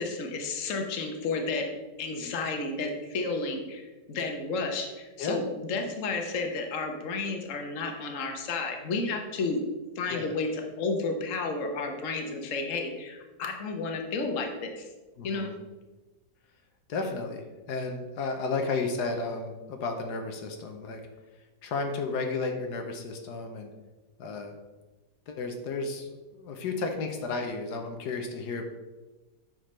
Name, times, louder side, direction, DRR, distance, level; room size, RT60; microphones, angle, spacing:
voice 1, 0.0-1.7 2.0-9.6 10.0-14.9 15.2-15.5, left 3 dB, 55° left, 4 dB, 1.3 m, -32 dB
voice 2, 15.2-15.6 16.9-21.0 21.6-23.7 24.2-24.5 25.3-28.6, left 3 dB, 90° left, 4 dB, 1.4 m, -33 dB
9.0 x 6.1 x 3.2 m, 1.2 s
omnidirectional pair, 1.7 m